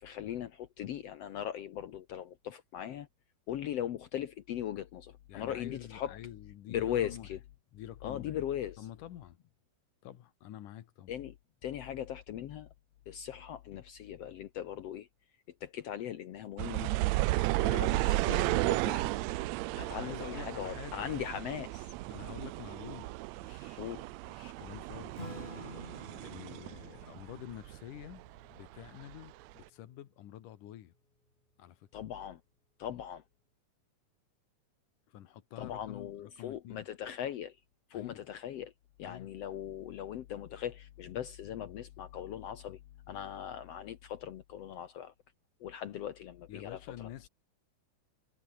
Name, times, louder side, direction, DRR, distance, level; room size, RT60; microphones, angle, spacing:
voice 1, 0.0-3.1 3.5-6.2 6.7-7.4 8.0-8.9 11.1-11.4 11.6-12.7 13.1-15.1 15.6-16.9 17.6-19.1 19.8-21.9 23.8-24.0 31.9-32.4 32.8-33.2 35.6-37.6 37.9-38.7 39.0-42.8 43.1-45.1 45.6-47.1, left 10 dB, 65° left, 1.8 m, -39 dB
voice 2, 5.3-7.3 7.7-8.4 8.8-9.4 10.0-11.1 17.6-17.9 19.9-21.1 22.1-25.2 26.2-28.2 28.5-30.9 31.6-31.9 35.1-36.8 37.9-38.2 39.0-39.3 46.5-47.3, left 12 dB, 90° left, 3.0 m, -48 dB
sound 1, 16.6-27.8 28.0-29.1 29.6-29.7, right 20 dB, 85° right, 1.5 m, -34 dB
Acoustic guitar / Strum, 25.1-30.0, left 2 dB, 15° left, 3.6 m, -50 dB
omnidirectional pair, 3.6 m